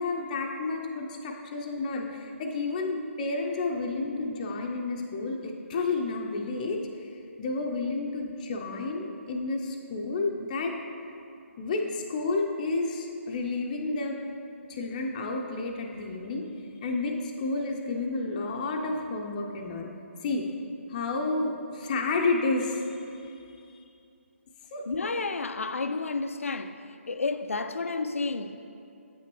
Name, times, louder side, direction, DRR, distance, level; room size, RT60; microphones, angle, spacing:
voice 1, 0.0-7.1 7.4-10.7 11.6-14.2 14.7-16.5 16.8-19.9 20.2-20.5 20.9-23.8 24.7-24.8, left 3 dB, 35° left, 0.6 m, -31 dB
voice 2, 24.9-26.8 27.1-28.6, left 3 dB, 80° left, 0.4 m, -31 dB
8.4 x 5.8 x 3.0 m
figure-of-eight pair, 145°, 7 cm